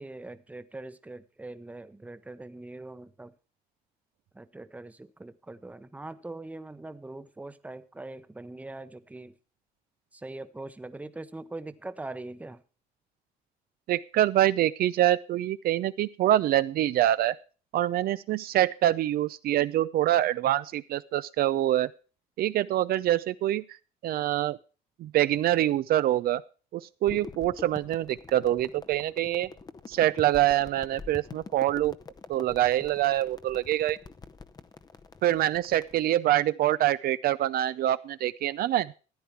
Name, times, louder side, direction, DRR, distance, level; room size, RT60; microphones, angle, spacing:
voice 1, 0.0-3.3 4.3-9.3 10.1-12.6, right 2 dB, 10° right, 0.8 m, -42 dB
voice 2, 13.9-17.4 17.7-21.9 22.4-23.6 24.0-24.6 25.0-26.4 26.7-29.5 29.9-31.9 32.3-34.0 35.2-38.9, right 13 dB, 65° right, 0.5 m, -25 dB
sound 1, 27.1-36.0, left 4 dB, 25° left, 0.7 m, -46 dB
14.0 x 9.7 x 4.6 m
cardioid pair, 110°, 17 cm